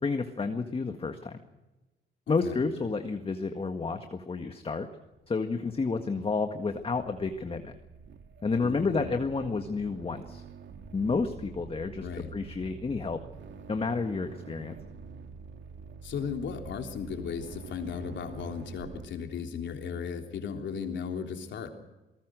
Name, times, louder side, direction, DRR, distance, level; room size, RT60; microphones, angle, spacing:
voice 1, 0.0-1.3 2.3-4.9 5.3-7.7 8.4-10.4 10.9-13.2 13.7-14.8, left 4 dB, 30° left, 6 dB, 1.8 m, -30 dB
voice 2, 2.3-2.6 8.6-9.2 12.0-12.4 16.0-21.7, left 6 dB, 65° left, 4 dB, 3.5 m, -36 dB
sound 1, 5.2-19.1, right 5 dB, 65° right, 2.4 m, -47 dB
27.5 x 19.0 x 6.3 m, 1.1 s
cardioid pair, 90°, 20 cm